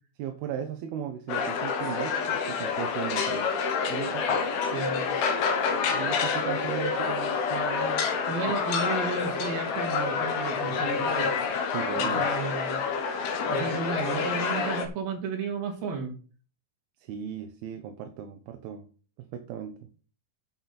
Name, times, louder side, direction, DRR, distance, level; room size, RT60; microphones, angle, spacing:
voice 1, 0.2-3.5 3.9-4.4 5.8-8.1 8.5-8.6 11.7-12.3 17.0-18.9 19.2-19.8, right 9 dB, 85° right, 6 dB, 2.8 m, -36 dB
sound 1, 1.3-14.9, left 5 dB, 90° left, 3.4 m, -28 dB
voice 2, 4.7-5.2 8.3-11.4 12.0-12.8 13.5-16.1, right 4 dB, 65° right, 1 dB, 4.1 m, -33 dB
10.0 x 8.1 x 4.3 m, 0.38 s
omnidirectional pair, 4.3 m